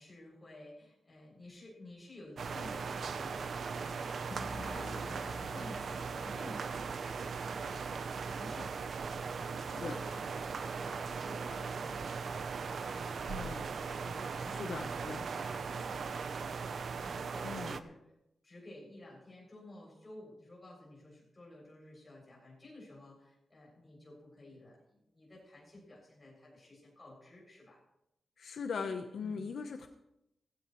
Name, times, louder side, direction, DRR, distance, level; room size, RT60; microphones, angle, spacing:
voice 1, 0.0-13.7 14.0-18.1 18.4-27.8 29.2-29.5, left 1 dB, 20° left, -4 dB, 7.1 m, -53 dB
sound 1, 2.4-17.8, right 5 dB, 60° right, 0.7 m, -39 dB
sound 2, 4.3-8.2, left 2 dB, 45° left, 1.4 m, -50 dB
voice 2, 13.3-13.7 14.6-15.3 17.4-17.8 28.4-29.9, left 5 dB, 70° left, 5 dB, 0.9 m, -39 dB
16.5 x 16.0 x 3.2 m, 0.84 s
wide cardioid pair, 180°, 0 cm